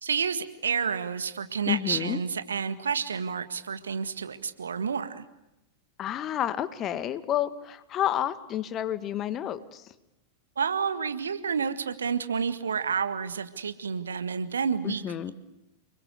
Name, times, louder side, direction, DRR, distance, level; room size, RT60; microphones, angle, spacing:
voice 1, 0.0-5.2 10.6-15.0, right 6 dB, 70° right, 11 dB, 1.8 m, -30 dB
voice 2, 1.7-2.2 6.0-9.8 14.8-15.3, left 11 dB, 30° left, 13 dB, 1.7 m, -30 dB
30.0 x 21.5 x 8.2 m, 0.92 s
figure-of-eight pair, 90°, 0 cm